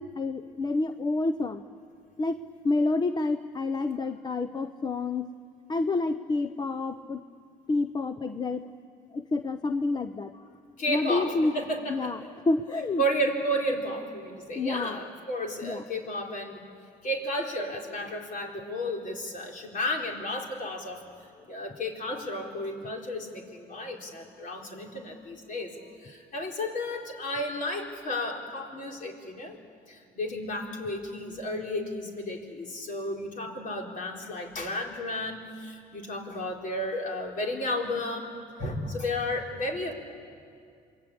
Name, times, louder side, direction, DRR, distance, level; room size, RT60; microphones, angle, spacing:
voice 1, 0.0-1.6 2.2-2.4 2.6-5.3 5.7-7.2 7.7-8.6 9.1-10.3 10.9-11.5 11.9-12.2 12.5-13.0 14.5-15.0 15.6-15.8, left 3 dB, 25° left, 10 dB, 0.8 m, -28 dB
voice 2, 10.8-12.1 13.0-16.6 17.0-21.0 21.5-25.7 26.0-29.6 29.9-39.9, left 1 dB, 50° left, 1 dB, 4.3 m, -33 dB
27.5 x 22.0 x 8.7 m, 2.3 s
cardioid pair, 110°, 17 cm